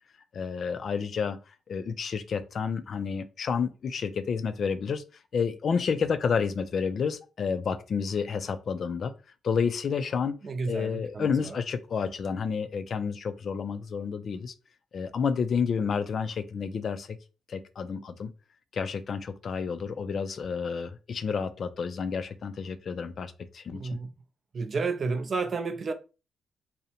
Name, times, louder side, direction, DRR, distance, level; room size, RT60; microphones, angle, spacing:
voice 1, 0.3-1.4 1.7-5.0 5.3-9.1 9.4-10.4 10.7-14.5 14.9-17.2 17.5-18.3 18.7-24.0, left 6 dB, 55° left, 0.3 m, -30 dB
voice 2, 10.4-11.6 23.7-24.1 24.5-25.9, right 4 dB, 45° right, 0.4 m, -31 dB
2.6 x 2.0 x 2.8 m
cardioid pair, 95°, 0 cm